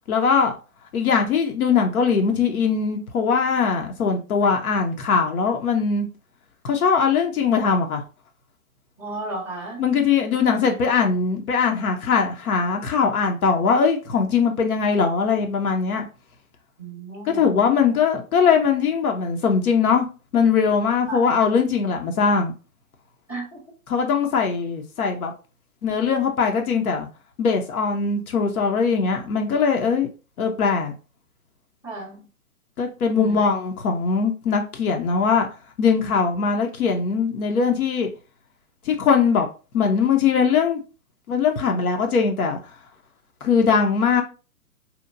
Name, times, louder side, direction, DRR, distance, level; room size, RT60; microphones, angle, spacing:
voice 1, 0.1-0.5 0.9-6.1 6.6-8.0 9.8-16.0 17.3-20.1 20.3-22.5 23.9-25.3 25.8-27.1 27.4-30.1 30.4-30.9 32.8-35.5 35.8-38.1 38.9-39.5 39.7-40.8 41.3-42.6 43.4-44.2, left 5 dB, 75° left, 0.7 m, -21 dB
voice 2, 9.0-9.9 16.8-17.5 21.1-21.2 23.3-23.6 31.8-32.3 33.1-33.4, right 2 dB, 15° left, 0.3 m, -34 dB
2.8 x 2.1 x 2.4 m
hypercardioid pair, 140°, 44 cm